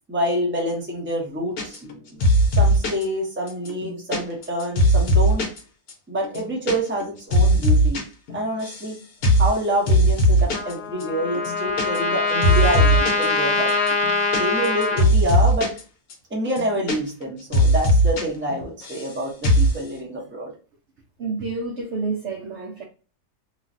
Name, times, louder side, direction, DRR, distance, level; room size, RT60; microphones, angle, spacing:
voice 1, 0.1-2.3 2.6-5.4 6.1-8.0 8.3-9.0 9.4-13.7 14.3-15.7 16.3-20.5, equal, 10° right, 0.6 m, -27 dB
sound 1, 1.6-3.0 3.5-5.6 5.9-6.0 6.2-6.8 7.0-8.0 8.3-8.9 9.2-9.5 9.9-10.7 11.0-11.1 11.4-12.2 12.4-13.3 13.7-15.8 16.1-16.2 16.5-17.3 17.5-18.2 18.5-19.1 19.4-19.8, equal, 70° left, 1.2 m, -19 dB
Trumpet, 10.5-15.0, left 3 dB, 85° left, 1.2 m, -23 dB
voice 2, 21.2-22.8, right 4 dB, 70° right, 0.6 m, -29 dB
3.0 x 2.4 x 2.5 m
omnidirectional pair, 1.7 m